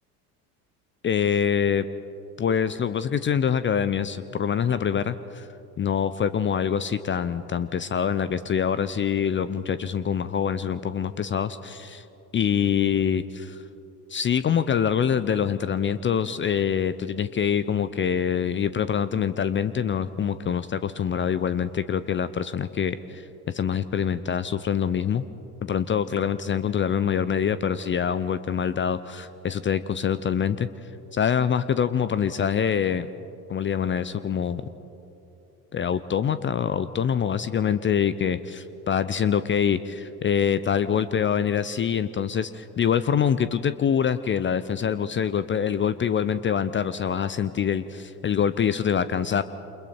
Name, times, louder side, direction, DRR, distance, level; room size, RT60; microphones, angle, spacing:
voice 1, 1.0-1.8 2.4-5.5 5.8-12.0 12.3-13.6 14.1-25.2 25.6-30.7 31.1-33.1 33.5-34.6 35.7-49.4, left 8 dB, 25° left, 15 dB, 0.7 m, -25 dB
28.5 x 27.5 x 4.5 m, 3.0 s
figure-of-eight pair, 65°, 46 cm